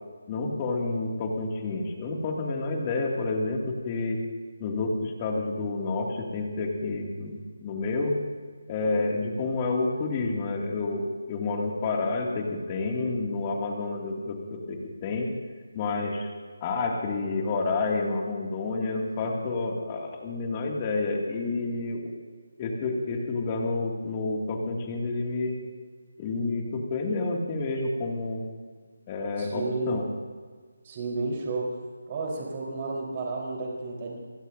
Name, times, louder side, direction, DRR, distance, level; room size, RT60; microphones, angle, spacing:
voice 1, 0.3-4.2 4.6-8.1 8.7-15.3 15.7-16.3 16.6-22.1 22.6-25.5 26.2-28.4 29.1-30.1, left 3 dB, 25° left, 0 dB, 2.5 m, -29 dB
voice 2, 29.4-30.0 30.8-31.8 32.1-34.2, right 3 dB, 30° right, -2 dB, 4.2 m, -32 dB
27.5 x 16.5 x 2.8 m, 1.5 s
figure-of-eight pair, 165°, 0 cm